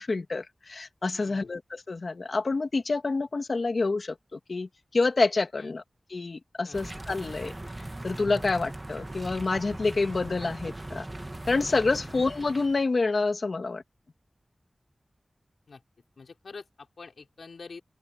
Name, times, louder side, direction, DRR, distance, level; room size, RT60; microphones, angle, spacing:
voice 1, 0.0-5.8 6.1-7.5 8.0-11.0 11.5-13.8, left 3 dB, 60° left, 2.4 m, -28 dB
voice 2, 1.1-1.5 5.6-5.8 6.6-6.9 8.3-8.4 11.9-12.1 15.7-15.8 16.2-17.8, left 4 dB, 85° left, 4.6 m, -46 dB
sound 1, 6.7-12.8, right 1 dB, 25° right, 1.5 m, -39 dB
open air
wide cardioid pair, 85°, 0 cm